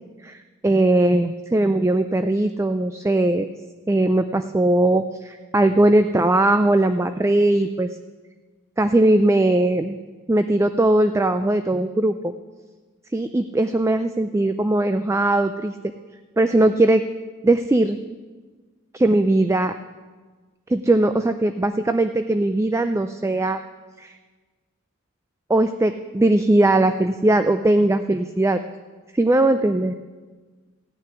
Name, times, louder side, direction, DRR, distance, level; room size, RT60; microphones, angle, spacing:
voice 1, 0.6-3.5 3.9-7.9 8.8-10.0 10.3-12.3 13.1-15.7 16.4-17.0 17.4-18.0 18.9-19.7 20.7-23.6 24.0-24.1 25.5-28.6 29.1-30.0, right 2 dB, 15° right, 9 dB, 0.3 m, -19 dB
16.0 x 6.6 x 9.7 m, 1.4 s
head